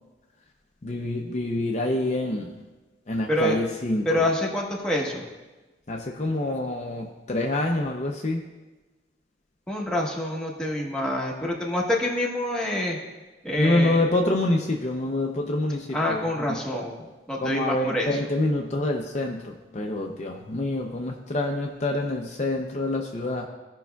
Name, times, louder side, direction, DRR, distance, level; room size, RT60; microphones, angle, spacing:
voice 1, 0.8-2.5 3.1-4.2 5.9-8.4 13.6-16.6 17.4-23.5, left 2 dB, 40° left, 1 dB, 0.6 m, -26 dB
voice 2, 4.0-5.3 9.7-13.0 13.4-14.0 15.9-17.0 17.3-18.1, left 1 dB, 5° left, -3 dB, 1.1 m, -26 dB
16.0 x 5.5 x 2.3 m, 1.2 s
head